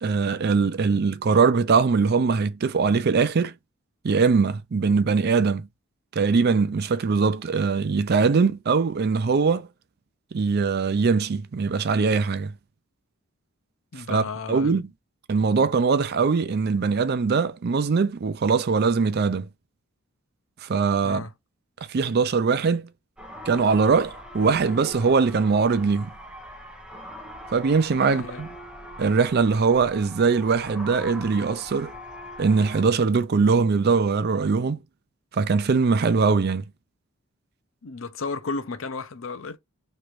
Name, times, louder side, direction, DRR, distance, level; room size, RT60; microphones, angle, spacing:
voice 1, 0.0-3.5 4.0-5.7 6.1-9.7 10.3-12.5 14.1-14.9 15.3-19.5 20.6-21.2 21.9-22.9 23.5-26.1 27.5-28.5 29.0-31.9 32.4-34.8 35.3-36.6, right 5 dB, 50° right, 0.4 m, -21 dB
voice 2, 13.9-14.8 21.0-21.3 28.0-28.4 37.8-39.6, left 4 dB, 70° left, 0.6 m, -33 dB
sound 1, 23.2-32.8, equal, 5° right, 0.7 m, -42 dB
3.2 x 2.5 x 4.4 m
head